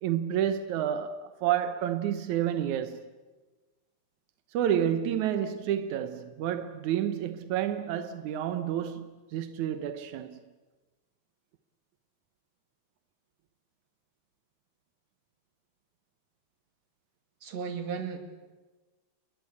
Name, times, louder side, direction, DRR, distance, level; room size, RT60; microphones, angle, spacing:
voice 1, 0.0-3.0 4.5-10.4, right 10 dB, 75° right, 1.8 m, -30 dB
voice 2, 17.4-18.2, right 6 dB, 45° right, 3.2 m, -34 dB
29.5 x 22.0 x 8.4 m
omnidirectional pair, 4.7 m